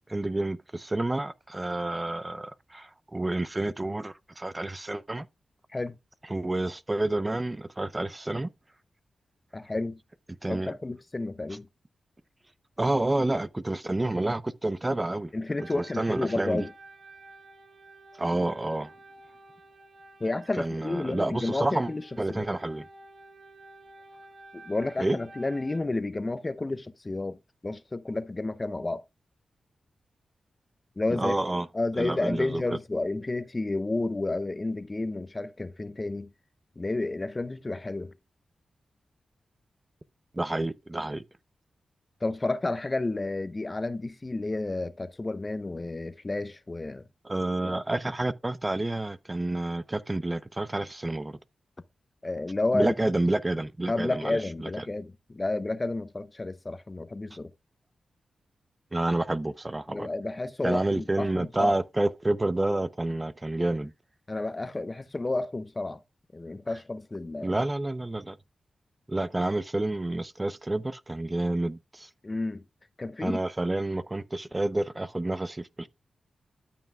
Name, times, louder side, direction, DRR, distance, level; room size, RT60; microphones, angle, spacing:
voice 1, 0.1-5.3 6.3-8.5 10.4-10.7 12.8-15.3 15.7-16.6 18.1-18.9 20.6-21.9 22.2-22.9 25.0-25.2 31.1-31.7 32.0-32.8 40.3-41.2 47.2-51.4 52.7-54.8 58.9-60.1 60.6-63.9 67.4-68.4 69.1-72.1 73.2-75.9, right 2 dB, 25° right, 0.6 m, -29 dB
voice 2, 9.5-10.0 10.5-11.7 15.3-16.7 20.2-22.0 22.3-22.5 24.5-29.0 31.0-31.4 31.7-36.3 36.8-38.1 42.2-47.1 52.2-53.1 53.9-57.5 59.9-61.8 64.3-66.0 66.3-67.6 69.2-69.3 72.2-72.6 73.0-73.4, left 2 dB, 35° left, 0.7 m, -31 dB
sound 1, 15.6-25.8, right 2 dB, 75° right, 1.8 m, -51 dB
13.5 x 5.7 x 2.3 m
supercardioid pair, 45°, 0 cm